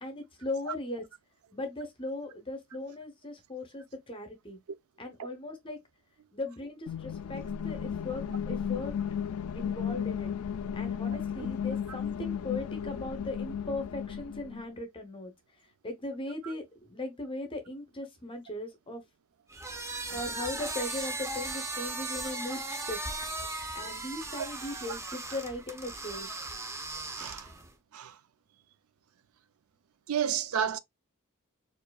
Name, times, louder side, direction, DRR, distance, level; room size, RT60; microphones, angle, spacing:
voice 1, 0.0-1.0 1.5-4.6 5.0-5.8 6.3-9.0 9.5-10.3 10.8-15.3 15.8-19.0 20.1-23.0 23.7-26.3, left 2 dB, 25° left, 0.8 m, -38 dB
sound 1, 6.9-14.6, left 8 dB, 70° left, 0.3 m, -34 dB
sound 2, 19.5-27.7, right 2 dB, 15° right, 0.6 m, -37 dB
voice 2, 27.2-27.5 27.9-28.2 30.1-30.8, right 8 dB, 70° right, 0.5 m, -32 dB
4.4 x 2.6 x 2.3 m
head